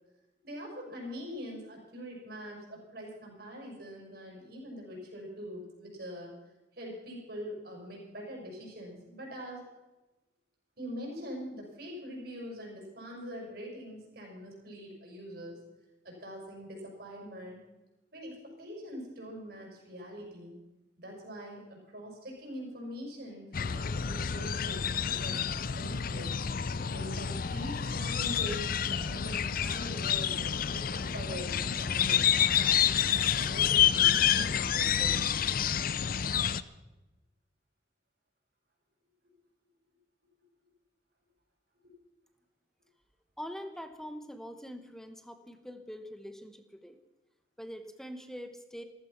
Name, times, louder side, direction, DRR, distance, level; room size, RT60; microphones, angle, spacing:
voice 1, 0.4-6.3 6.7-9.7 10.8-15.6 16.0-17.6 18.1-20.6 21.0-26.4 26.8-32.3 32.6-35.3, equal, 55° right, -1 dB, 6.0 m, -43 dB
sound 1, 23.5-36.6, left 8 dB, 50° left, 0.5 m, -28 dB
voice 2, 43.4-47.0 47.6-48.8, equal, ahead, 8 dB, 1.1 m, -44 dB
15.0 x 14.5 x 5.9 m, 1.1 s
head